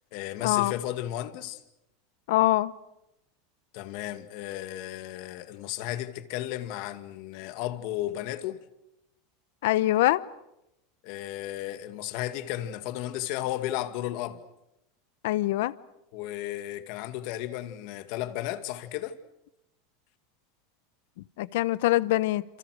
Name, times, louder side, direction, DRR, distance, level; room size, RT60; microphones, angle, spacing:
voice 1, 0.1-1.6 3.7-8.6 11.0-14.4 16.1-19.2, left 13 dB, 60° left, 2.1 m, -34 dB
voice 2, 2.3-2.7 9.6-10.2 15.2-15.7 21.4-22.4, left 16 dB, 75° left, 0.9 m, -23 dB
28.0 x 28.0 x 6.5 m
supercardioid pair, 135°, 0 cm